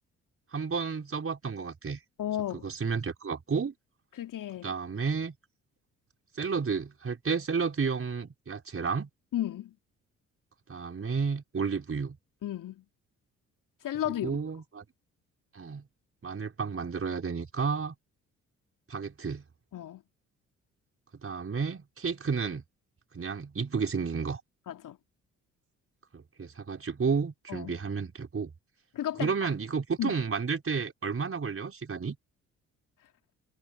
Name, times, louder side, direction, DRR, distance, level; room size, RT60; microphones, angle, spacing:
voice 1, 0.5-2.0 2.6-3.7 4.6-5.3 6.3-9.1 10.7-12.2 14.0-14.8 15.5-15.9 16.2-17.9 18.9-19.4 21.2-22.6 23.1-24.4 26.1-28.5 29.2-32.2, right 5 dB, 35° right, 4.8 m, -31 dB
voice 2, 2.2-2.7 4.2-4.7 9.3-9.7 12.4-12.8 13.8-14.4 19.7-20.0 24.7-25.0 27.5-27.7 28.9-29.3 30.0-30.2, left 12 dB, 55° left, 3.0 m, -33 dB
figure-of-eight pair, 45°, 38 cm